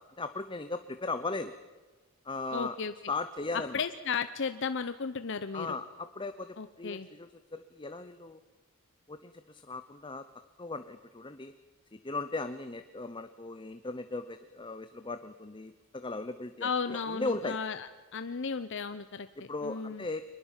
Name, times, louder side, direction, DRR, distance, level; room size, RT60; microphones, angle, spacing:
voice 1, 0.0-1.5 2.2-2.8 3.1-3.8 5.5-8.4 9.1-10.3 10.6-11.5 11.9-17.6 19.4-20.2, left 3 dB, 20° left, 9 dB, 0.8 m, -37 dB
voice 2, 2.5-2.9 3.7-5.8 6.6-7.1 16.6-19.3 19.6-20.0, left 5 dB, 55° left, 10 dB, 0.8 m, -34 dB
24.0 x 21.0 x 7.4 m, 1.2 s
head